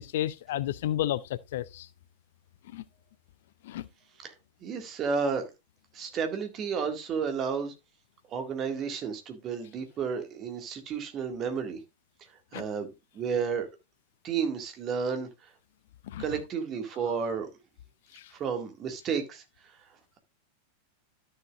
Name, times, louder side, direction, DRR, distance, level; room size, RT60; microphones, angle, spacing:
voice 1, 0.0-1.9 2.7-2.8 3.6-3.9 12.5-12.6 16.1-16.2 18.1-18.3, left 12 dB, 55° left, 0.5 m, -32 dB
voice 2, 4.6-5.5 5.9-7.7 8.3-11.8 12.5-12.9 13.1-13.7 14.2-15.3 16.2-17.5 18.3-19.4, right 6 dB, 30° right, 1.9 m, -31 dB
13.0 x 6.7 x 2.4 m
figure-of-eight pair, 90°, 0 cm